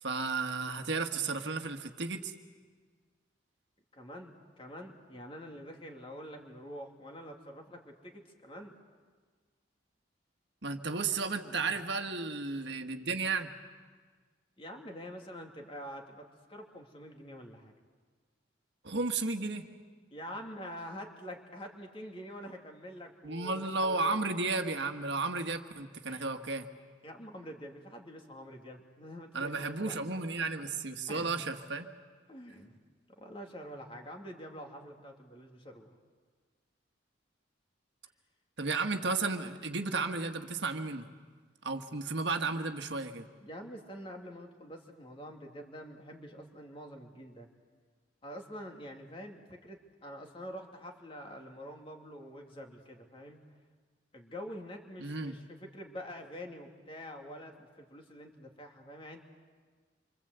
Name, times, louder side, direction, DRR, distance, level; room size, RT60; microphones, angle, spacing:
voice 1, 0.0-2.3 10.6-13.5 18.8-19.7 23.2-26.7 29.3-31.9 38.6-41.1 41.6-43.3 55.0-55.3, right 3 dB, 65° right, 6 dB, 1.5 m, -33 dB
voice 2, 3.9-8.7 11.3-11.7 14.6-17.7 20.1-24.1 26.1-26.4 27.0-30.0 31.1-31.4 32.3-32.8 33.1-36.0 43.4-47.5 48.2-53.4 54.1-59.2, equal, 30° left, 2 dB, 2.6 m, -46 dB
27.0 x 25.0 x 8.0 m, 1.5 s
head